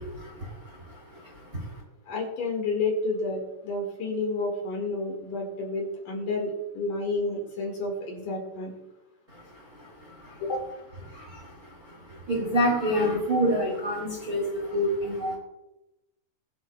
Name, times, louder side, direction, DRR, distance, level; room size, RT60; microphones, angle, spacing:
voice 1, 0.0-1.8 9.3-10.4 11.1-15.4, equal, 25° right, -2 dB, 2.2 m, -29 dB
voice 2, 2.1-8.7 10.4-10.7, left 2 dB, 55° left, 0 dB, 3.2 m, -30 dB
23.5 x 8.0 x 2.3 m, 0.96 s
omnidirectional pair, 4.8 m